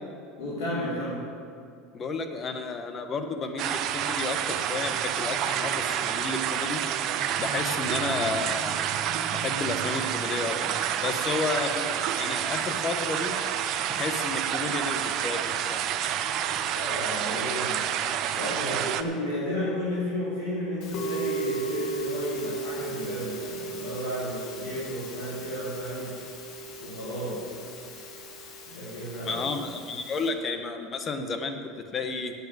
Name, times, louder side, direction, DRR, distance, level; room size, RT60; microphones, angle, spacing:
voice 1, 0.4-1.3 16.2-16.4 16.7-17.9 18.3-26.1 26.8-27.4 28.7-29.4, left 1 dB, 75° left, -8 dB, 3.1 m, -33 dB
voice 2, 1.9-6.8 7.4-8.9 9.3-13.4 13.9-15.8 29.2-31.6 31.9-32.3, left 3 dB, 35° left, 6 dB, 1.3 m, -32 dB
sound 1, 3.6-19.0, right 9 dB, 55° right, 0.6 m, -29 dB
Musical instrument, 20.8-30.3, right 3 dB, 60° left, 2.0 m, -36 dB
8.7 x 8.4 x 7.9 m, 2.4 s
hypercardioid pair, 90°, 0 cm